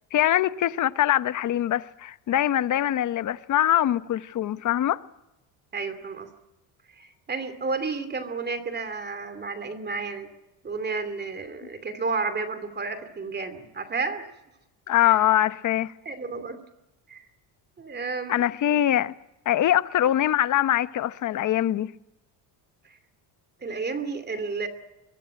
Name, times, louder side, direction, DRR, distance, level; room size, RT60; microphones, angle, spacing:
voice 1, 0.1-5.0 14.9-15.9 18.3-19.1 19.4-21.9, left 12 dB, 45° left, 1.0 m, -23 dB
voice 2, 5.7-6.3 7.0-10.3 10.6-14.3 15.0-15.2 16.0-16.6 17.1-17.2 17.8-18.4 23.6-24.7, right 4 dB, 25° right, 2.7 m, -31 dB
23.0 x 22.5 x 8.8 m
cardioid pair, 140°, 42 cm